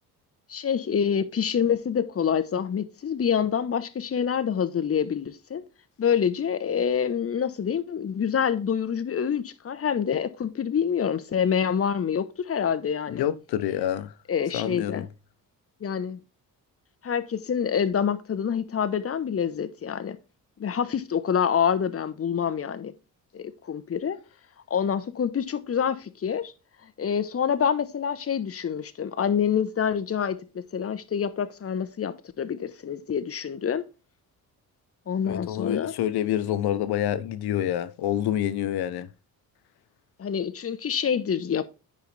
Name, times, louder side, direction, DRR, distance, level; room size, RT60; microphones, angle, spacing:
voice 1, 0.5-5.6 6.0-13.3 14.3-15.1 15.8-16.2 17.0-20.2 20.6-22.9 23.3-24.2 24.7-26.5 27.0-33.8 35.1-35.9 40.2-41.6, left 7 dB, 35° left, 0.9 m, -26 dB
voice 2, 13.1-14.1 14.5-15.1 35.3-39.1, left 11 dB, 80° left, 0.8 m, -27 dB
9.0 x 5.4 x 3.3 m
cardioid pair, 80°, 38 cm